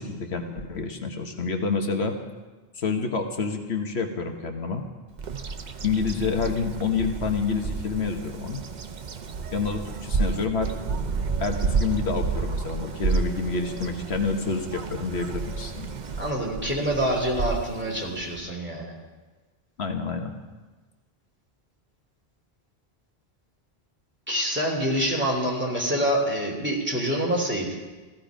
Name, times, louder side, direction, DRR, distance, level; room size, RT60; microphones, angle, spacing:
voice 1, 0.0-2.2 2.7-4.8 5.8-8.6 9.5-10.7 11.4-15.9 19.8-20.4, left 4 dB, 80° left, 4 dB, 1.5 m, -28 dB
Bird vocalization bird call bird song, 5.2-18.4, right 4 dB, 50° right, 0.8 m, -31 dB
voice 2, 16.2-18.9 24.3-27.7, equal, 10° right, -2 dB, 3.0 m, -26 dB
15.5 x 14.5 x 5.1 m, 1.3 s
omnidirectional pair, 1.1 m